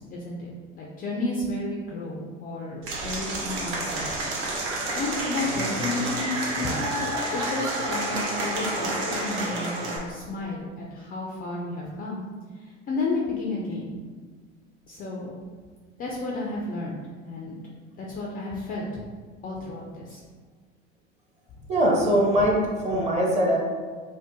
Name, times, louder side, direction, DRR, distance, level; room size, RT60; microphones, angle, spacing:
voice 1, 0.0-4.2 4.7-12.2 12.6-13.9 14.9-15.4 16.0-17.0 17.2-17.6 18.0-19.0 19.4-20.2, left 2 dB, 25° left, -3 dB, 0.4 m, -32 dB
Applause / Crowd, 2.8-10.0, right 2 dB, 60° right, 0.8 m, -29 dB
voice 2, 21.7-23.6, equal, 15° right, -3 dB, 0.8 m, -22 dB
2.7 x 2.1 x 3.6 m, 1.5 s
hypercardioid pair, 85°, 38 cm